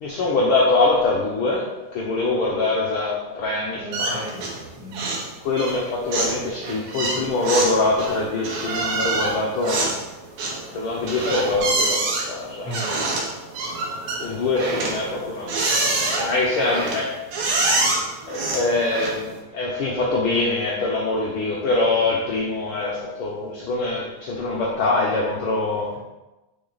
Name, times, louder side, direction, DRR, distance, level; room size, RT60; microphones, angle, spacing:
voice 1, 0.0-4.2 5.4-10.0 10.5-13.4 14.2-17.2 18.3-25.9, left 3 dB, 70° left, -2 dB, 1.2 m, -24 dB
voice 2, 3.7-5.1 12.6-13.0, right 1 dB, ahead, -7 dB, 2.0 m, -35 dB
sound 1, 3.9-4.7 4.9-5.3 5.6-19.4, right 2 dB, 75° right, 2.7 m, -26 dB
7.4 x 5.2 x 3.9 m, 1.1 s
omnidirectional pair, 3.5 m